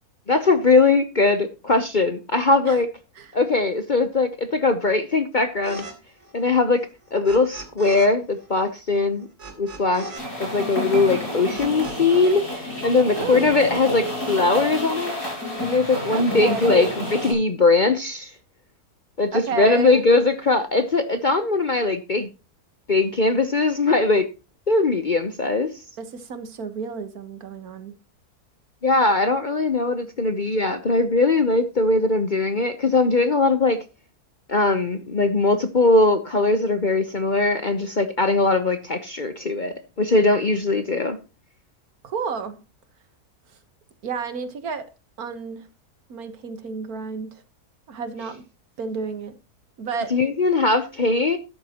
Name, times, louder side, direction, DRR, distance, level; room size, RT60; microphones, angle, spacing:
voice 1, 0.3-2.9 3.3-5.8 6.3-6.8 7.1-9.3 9.6-10.0 10.4-15.1 15.6-18.3 19.2-22.3 22.9-24.3 24.7-25.7 28.8-33.8 34.5-41.2 50.1-51.4, left 3 dB, 40° left, 0.8 m, -20 dB
sound 1, 5.6-5.9 6.2-8.1 8.3-12.4 12.6-13.8, right 2 dB, 45° right, 3.4 m, -40 dB
sound 2, 10.2-17.3, left 1 dB, 80° left, 7.8 m, -30 dB
voice 2, 13.2-13.5 16.1-16.9 19.3-20.0 26.0-27.9 42.0-42.6 44.0-44.9 45.2-45.7 46.1-47.4 47.9-48.4 48.8-49.3 49.8-50.2, right 5 dB, 70° right, 1.7 m, -31 dB
13.0 x 10.5 x 2.9 m
omnidirectional pair, 1.6 m